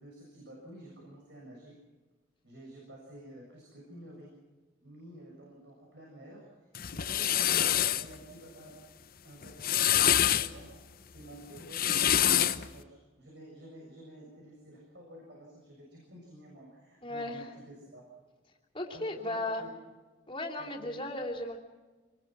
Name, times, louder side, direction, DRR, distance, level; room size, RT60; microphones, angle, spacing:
voice 1, 0.0-1.8 2.4-4.3 4.8-8.8 9.2-10.7 11.1-18.0 18.9-19.7 20.6-21.1, right 1 dB, 60° right, -2 dB, 7.2 m, -50 dB
sound 1, 6.7-8.1 9.4-10.5 11.6-12.7, left 11 dB, 50° left, 0.8 m, -26 dB
voice 2, 17.0-17.5 18.7-19.7 20.3-21.6, left 1 dB, 25° left, 1 dB, 3.0 m, -35 dB
26.0 x 21.0 x 6.2 m, 1.3 s
head